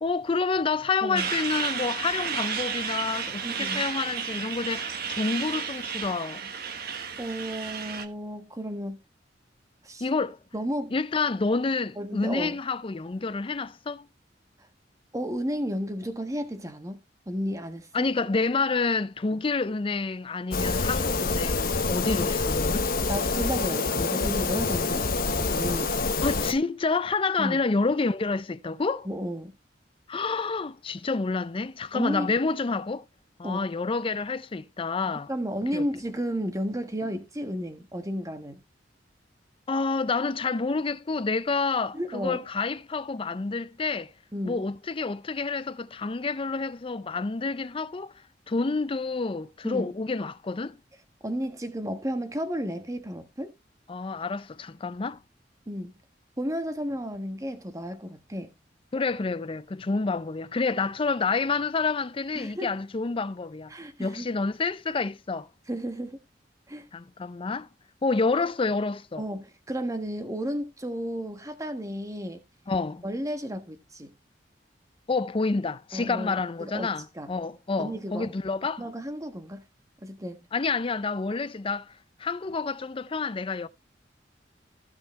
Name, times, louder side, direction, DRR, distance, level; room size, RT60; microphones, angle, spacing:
voice 1, 0.0-6.5 10.0-10.4 10.9-14.1 17.9-22.9 26.2-29.1 30.1-33.1 33.4-35.3 35.7-35.8 39.7-44.1 44.4-48.1 48.5-50.8 53.9-55.2 58.9-63.7 64.0-65.5 66.9-67.7 68.0-69.2 72.7-73.0 75.1-78.8 80.5-81.9 82.2-83.7, left 4 dB, 30° left, 0.5 m, -28 dB
voice 2, 1.0-1.3 3.4-3.8 7.2-9.0 9.8-10.1 10.5-10.9 12.0-12.6 15.1-17.0 17.3-18.1 19.3-19.4 23.1-26.0 27.4-27.6 29.0-29.6 31.9-32.3 33.4-33.6 35.1-38.6 41.9-42.4 44.3-44.6 49.6-49.9 51.2-53.5 55.7-55.9 56.4-58.5 62.3-62.7 63.7-64.4 65.7-66.2 66.7-66.9 69.2-72.4 73.0-74.1 75.9-76.9 77.1-77.3 77.8-78.3 78.8-79.6 80.0-80.5, equal, 20° right, 1.3 m, -33 dB
Truck, 1.2-8.1, right 7 dB, 60° right, 1.3 m, -32 dB
sound 1, 20.5-26.5, left 3 dB, 55° left, 1.0 m, -26 dB
15.0 x 5.6 x 3.2 m
head